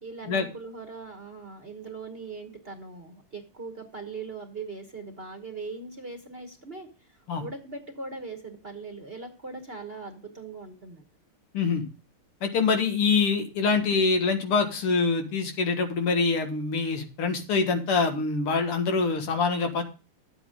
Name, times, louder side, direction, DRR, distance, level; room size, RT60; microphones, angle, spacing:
voice 1, 0.0-11.0, right 4 dB, 35° right, 4 dB, 1.2 m, -40 dB
voice 2, 11.5-11.8 12.4-19.8, left 4 dB, 80° left, 5 dB, 2.5 m, -25 dB
11.5 x 8.1 x 3.7 m, 0.34 s
omnidirectional pair, 2.4 m